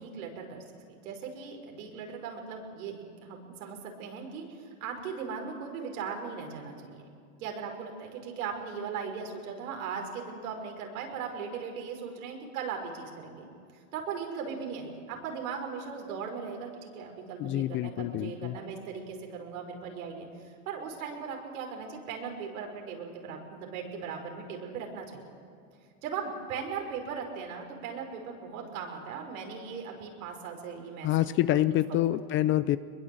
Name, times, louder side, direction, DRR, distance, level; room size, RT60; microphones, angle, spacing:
voice 1, 0.0-7.0 7.4-13.5 13.9-25.3 26.0-32.1, right 6 dB, 75° right, 3 dB, 5.4 m, -38 dB
voice 2, 17.4-18.6 31.0-32.8, left 14 dB, 30° left, 15 dB, 0.5 m, -27 dB
22.0 x 22.0 x 7.8 m, 2.4 s
supercardioid pair, 130°, 43 cm